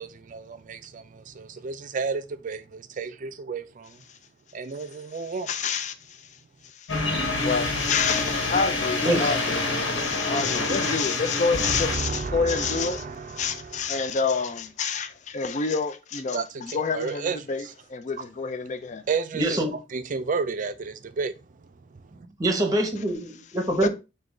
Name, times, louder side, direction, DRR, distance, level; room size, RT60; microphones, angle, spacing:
voice 1, 0.0-4.0 4.5-5.5 9.2-9.4 11.6-13.9 16.3-17.7 19.1-21.3 21.9-22.3, right 4 dB, 45° right, 0.4 m, -32 dB
voice 2, 5.5-6.3 6.6-6.9 7.4-9.7 10.0-19.0 23.8-23.9, left 5 dB, 40° left, 0.4 m, -28 dB
sound 1, 6.9-12.0, left 3 dB, 80° left, 1.3 m, -27 dB
voice 3, 19.3-19.7 22.4-23.9, right 1 dB, 20° right, 0.8 m, -24 dB
5.1 x 2.3 x 3.6 m
head